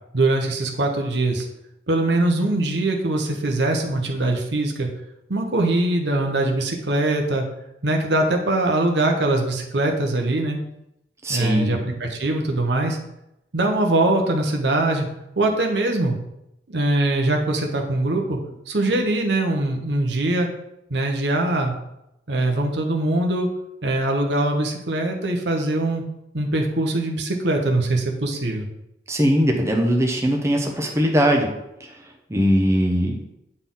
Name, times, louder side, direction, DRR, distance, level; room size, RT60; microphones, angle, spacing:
voice 1, 0.1-1.4 1.9-4.9 5.3-7.5 7.8-10.6 11.3-13.0 13.5-15.1 15.4-16.2 16.7-18.4 18.7-20.5 20.9-21.7 22.3-23.5 23.8-26.0 26.3-28.7, right 2 dB, 75° right, 2 dB, 1.1 m, -22 dB
voice 2, 11.2-11.8 29.1-31.5 32.3-33.1, equal, 15° right, 1 dB, 0.8 m, -20 dB
8.8 x 4.2 x 3.9 m, 0.85 s
head